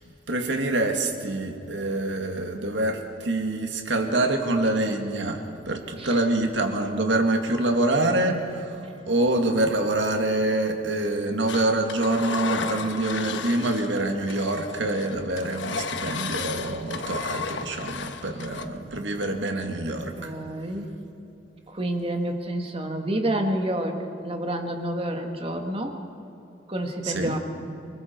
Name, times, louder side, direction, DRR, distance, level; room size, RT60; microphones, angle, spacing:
voice 1, 0.3-8.8 9.1-20.3 27.0-27.4, right 2 dB, 85° right, 4 dB, 2.2 m, -26 dB
Engine, 11.5-14.0 14.3-18.6, left 5 dB, 85° left, 1.1 m, -33 dB
voice 2, 20.2-20.9 21.7-26.0 26.7-27.4, right 1 dB, 30° right, 4 dB, 1.8 m, -29 dB
29.0 x 20.5 x 4.6 m, 2.9 s
head